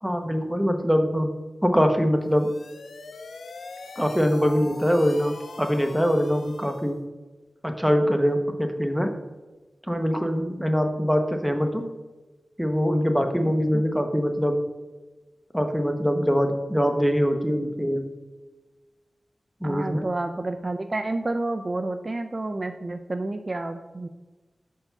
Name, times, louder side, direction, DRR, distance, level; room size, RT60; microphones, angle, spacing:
voice 1, 0.0-1.3 1.6-2.5 4.0-7.0 7.6-9.1 9.9-11.8 12.6-14.6 15.5-18.0 19.6-20.1, equal, ahead, 5 dB, 0.9 m, -23 dB
sound 1, 2.2-7.0, left 4 dB, 85° left, 0.4 m, -43 dB
voice 2, 19.6-24.1, right 2 dB, 40° right, 8 dB, 0.4 m, -30 dB
5.2 x 4.6 x 5.8 m, 1.2 s
cardioid pair, 60°, 0 cm